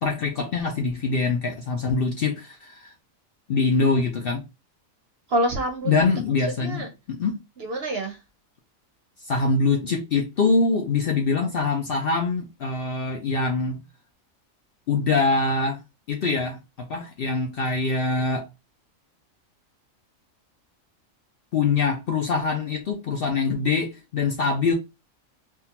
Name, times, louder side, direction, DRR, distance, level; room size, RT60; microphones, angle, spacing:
voice 1, 0.0-2.9 3.5-4.4 5.9-7.4 9.2-13.8 14.9-15.8 16.1-18.4 21.5-24.7, left 4 dB, 60° left, 0.6 m, -24 dB
voice 2, 5.3-6.1 6.5-6.9 7.6-8.2, right 1 dB, 60° right, 0.8 m, -27 dB
3.6 x 2.3 x 2.8 m
omnidirectional pair, 1.4 m